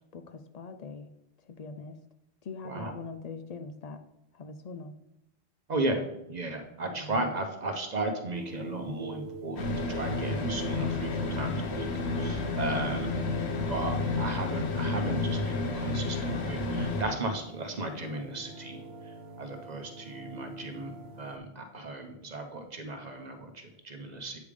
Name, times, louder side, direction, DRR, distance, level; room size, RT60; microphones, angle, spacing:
voice 1, 0.1-1.1 1.5-2.0 2.4-4.0 4.3-4.9 6.9-7.3 12.8-13.7, left 4 dB, 55° left, 8 dB, 0.5 m, -43 dB
voice 2, 5.7-11.9 12.1-13.3 13.7-18.8 19.4-20.9 21.2-24.4, right 2 dB, 45° right, 4 dB, 0.8 m, -35 dB
sound 1, 8.3-21.4, right 3 dB, 80° right, 1.0 m, -45 dB
sound 2, 9.6-17.0, left 3 dB, 80° left, 1.1 m, -31 dB
8.2 x 3.4 x 4.9 m, 0.85 s
omnidirectional pair, 1.1 m